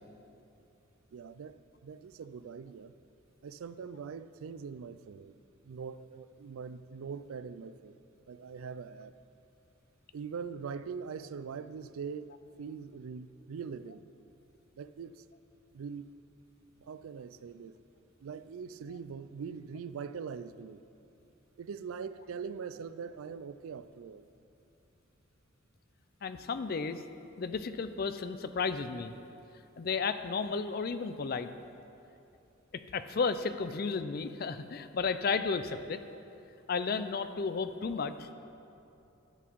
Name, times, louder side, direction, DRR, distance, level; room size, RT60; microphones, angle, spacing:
voice 1, 1.1-2.9 3.4-5.3 5.6-8.0 8.3-9.1 10.1-14.0 14.8-15.2 15.7-16.1 16.8-17.7 18.2-20.8 21.6-24.2, right 6 dB, 85° right, 14 dB, 0.4 m, -42 dB
voice 2, 26.2-27.0 27.4-29.1 29.8-31.5 32.7-36.0 36.7-38.3, left 5 dB, 45° left, 11 dB, 0.4 m, -33 dB
12.0 x 8.1 x 4.6 m, 2.8 s
head